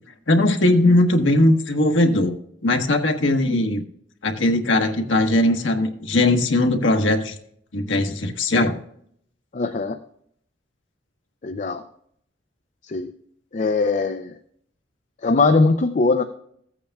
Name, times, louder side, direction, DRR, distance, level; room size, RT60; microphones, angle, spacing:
voice 1, 0.3-2.3 2.6-3.8 4.2-7.4 7.7-8.7, left 1 dB, 90° left, 3 dB, 1.2 m, -19 dB
voice 2, 9.5-10.0 11.4-11.8 12.9-13.1 13.5-14.3 15.2-16.2, left 3 dB, 40° left, 8 dB, 0.5 m, -20 dB
15.5 x 8.5 x 2.3 m, 0.66 s
head